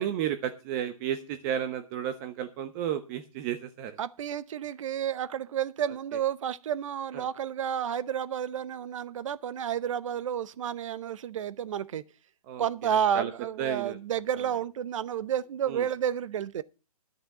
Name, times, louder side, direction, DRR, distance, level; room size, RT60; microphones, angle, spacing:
voice 1, 0.0-4.0 7.1-7.3 12.5-13.3 13.6-14.0 15.7-15.9, right 10 dB, 30° right, 1.0 m, -33 dB
voice 2, 4.0-12.0 12.6-16.6, right 9 dB, 55° right, 0.8 m, -31 dB
11.0 x 6.6 x 7.8 m
hypercardioid pair, 145°, 19 cm